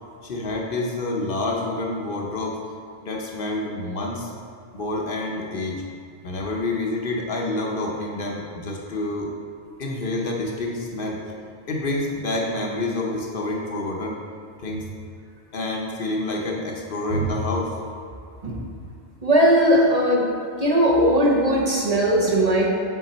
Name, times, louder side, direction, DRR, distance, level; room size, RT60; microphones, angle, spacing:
voice 1, 0.2-2.6 3.0-4.3 4.7-5.8 6.2-9.3 9.8-11.2 11.7-14.2 14.6-14.8 15.5-17.7, left 2 dB, 55° left, -1 dB, 0.9 m, -28 dB
voice 2, 19.2-20.3 20.6-22.7, equal, 40° right, -3 dB, 0.7 m, -18 dB
7.1 x 3.7 x 4.1 m, 2.4 s
omnidirectional pair, 1.2 m